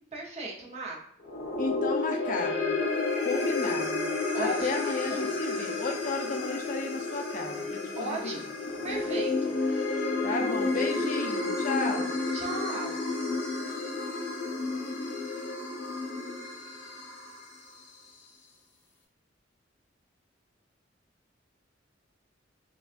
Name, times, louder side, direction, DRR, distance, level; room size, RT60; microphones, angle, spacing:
voice 1, 0.1-1.0 4.3-4.8 5.1-5.3 8.0-8.5 8.8-9.6 12.3-13.0, right 2 dB, 35° right, -2 dB, 0.8 m, -36 dB
sound 1, 1.2-17.7, left 3 dB, 65° left, 1.0 m, -31 dB
voice 2, 1.6-2.7 3.2-4.1 4.4-8.4 10.2-12.1, left 3 dB, 45° left, 2 dB, 0.6 m, -33 dB
4.8 x 2.4 x 2.5 m, 0.69 s
head